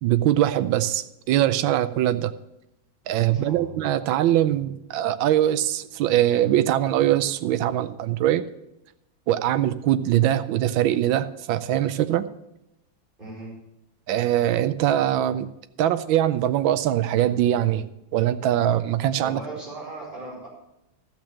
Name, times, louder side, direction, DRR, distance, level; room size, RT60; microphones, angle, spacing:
voice 1, 0.0-2.3 3.1-8.4 9.3-12.3 14.1-15.5 15.8-17.9 18.1-19.4, right 12 dB, 85° right, 12 dB, 1.4 m, -22 dB
voice 2, 3.3-3.7 13.2-13.6 19.2-20.5, right 2 dB, 25° right, -5 dB, 4.7 m, -38 dB
14.0 x 5.9 x 7.5 m, 0.89 s
omnidirectional pair, 2.1 m